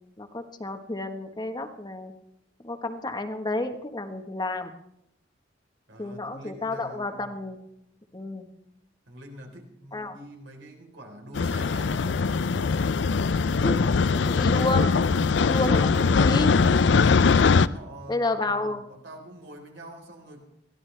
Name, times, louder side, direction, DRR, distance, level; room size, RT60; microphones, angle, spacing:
voice 1, 0.2-2.1 2.6-4.7 6.0-7.6 8.1-8.5 9.9-10.2 13.5-13.8 14.1-14.9 15.4-16.5 18.1-18.8, left 2 dB, 25° left, 6 dB, 1.2 m, -30 dB
voice 2, 5.9-7.4 9.1-12.4 15.6-15.9 17.6-20.4, right 1 dB, 75° right, 2 dB, 3.9 m, -46 dB
sound 1, 11.3-17.7, left 4 dB, 70° left, 0.5 m, -21 dB
22.5 x 15.5 x 3.3 m, 0.80 s
head